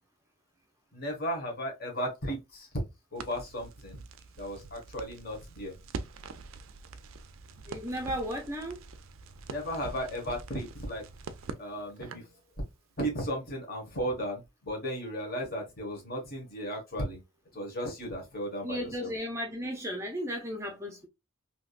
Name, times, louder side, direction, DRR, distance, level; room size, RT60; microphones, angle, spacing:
voice 1, 0.9-2.7 3.1-4.0 4.4-5.7 9.5-11.0 11.6-12.3 13.0-17.2 17.5-19.1, equal, 45° left, 1.4 m, -35 dB
Crackle, 3.1-12.4, right 4 dB, 70° right, 0.4 m, -45 dB
voice 2, 7.7-8.8 18.6-21.1, equal, 15° right, 0.5 m, -35 dB
3.4 x 2.8 x 2.4 m
head